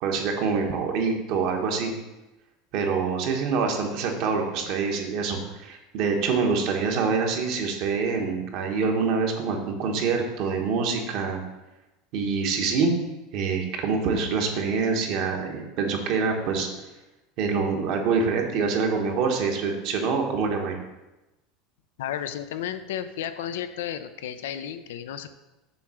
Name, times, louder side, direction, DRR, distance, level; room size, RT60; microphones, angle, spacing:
voice 1, 0.0-1.9 2.7-11.4 12.1-13.0 13.3-16.7 17.4-20.8, right 5 dB, 60° right, 2 dB, 1.3 m, -25 dB
voice 2, 22.0-25.4, left 10 dB, 90° left, 10 dB, 0.5 m, -33 dB
7.0 x 3.3 x 6.2 m, 1.0 s
supercardioid pair, 135°, 0 cm